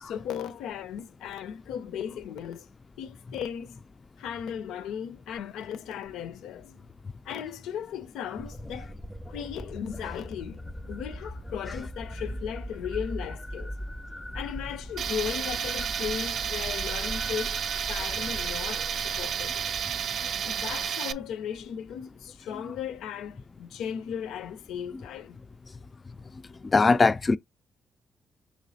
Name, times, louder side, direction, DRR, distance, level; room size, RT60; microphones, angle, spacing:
voice 1, 0.0-2.7 3.0-3.8 4.2-6.8 7.2-8.9 9.3-13.7 14.3-19.7 20.4-25.4, left 8 dB, 85° left, 0.5 m, -36 dB
sound 1, 8.4-20.9, equal, 5° left, 0.7 m, -40 dB
Tools, 15.0-21.1, right 8 dB, 60° right, 0.4 m, -31 dB
voice 2, 26.6-27.4, left 4 dB, 30° left, 0.3 m, -20 dB
6.2 x 3.2 x 2.7 m
cardioid pair, 90°, 0 cm